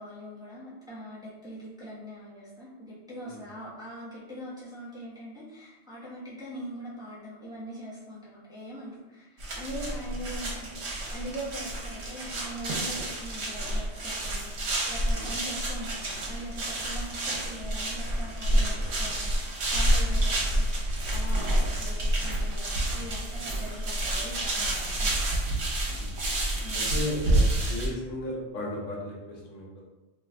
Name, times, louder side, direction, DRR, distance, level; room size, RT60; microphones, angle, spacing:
voice 1, 0.0-14.5 14.9-20.6 21.0-25.2 26.6-26.9, equal, 5° right, -10 dB, 0.8 m, -42 dB
sound 1, 9.4-27.9, right 1 dB, 65° right, 1.0 m, -28 dB
voice 2, 18.5-18.9 23.5-23.6 26.0-26.1 26.7-29.8, left 1 dB, 80° left, -3 dB, 1.1 m, -36 dB
2.7 x 2.3 x 3.3 m, 1.1 s
omnidirectional pair, 1.3 m